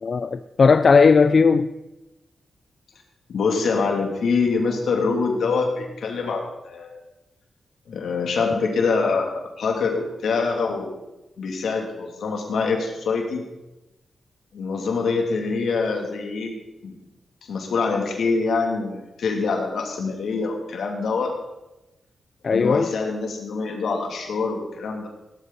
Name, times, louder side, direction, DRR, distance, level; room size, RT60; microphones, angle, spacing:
voice 1, 0.0-1.7 22.4-22.9, left 5 dB, 50° left, 0.5 m, -17 dB
voice 2, 3.3-7.0 7.9-10.9 11.4-13.5 14.5-16.9 17.4-21.3 22.5-25.1, left 4 dB, 80° left, 2.9 m, -25 dB
17.5 x 13.0 x 4.2 m
cardioid pair, 100°, 0 cm